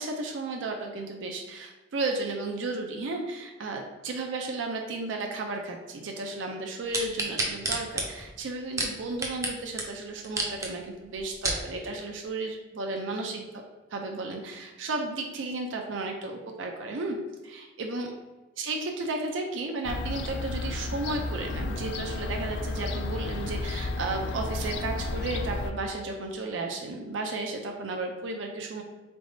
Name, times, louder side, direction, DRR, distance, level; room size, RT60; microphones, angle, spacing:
voice 1, 0.0-13.5 13.9-17.2 17.4-18.1 18.6-28.8, right 3 dB, 80° right, 2 dB, 0.5 m, -33 dB
sound 1, 6.9-9.5 9.8-9.9 10.2-10.7 11.2-11.6 12.3-12.4, right 2 dB, 15° right, 0.5 m, -29 dB
Fowl / Gull seagull, 19.8-25.7, left 2 dB, 60° left, 0.3 m, -32 dB
3.9 x 3.4 x 2.6 m, 1.2 s
head